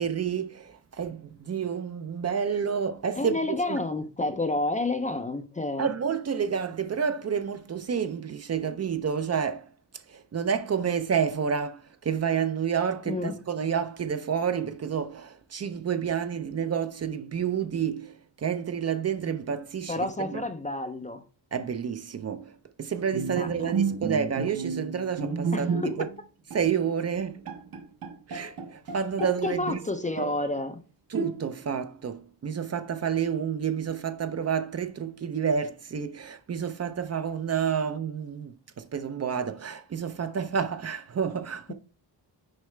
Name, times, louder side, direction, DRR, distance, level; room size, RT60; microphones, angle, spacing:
voice 1, 0.0-3.4 3.7-3.8 5.8-9.7 10.1-20.4 21.5-26.1 26.5-27.4 28.3-29.8 31.1-41.7, right 7 dB, 40° right, 0.5 m, -29 dB
voice 2, 3.2-5.9 13.1-13.4 19.3-19.4 19.9-21.2 23.4-23.7 25.5-25.9 29.4-30.8, left 2 dB, 20° left, 0.4 m, -30 dB
Bowed string instrument, 23.1-26.2 26.5-26.7 27.1-27.2 27.5-29.4 29.7-30.5 31.1-31.7, right 5 dB, 55° right, 0.9 m, -32 dB
6.4 x 4.8 x 3.2 m
wide cardioid pair, 170°, 42 cm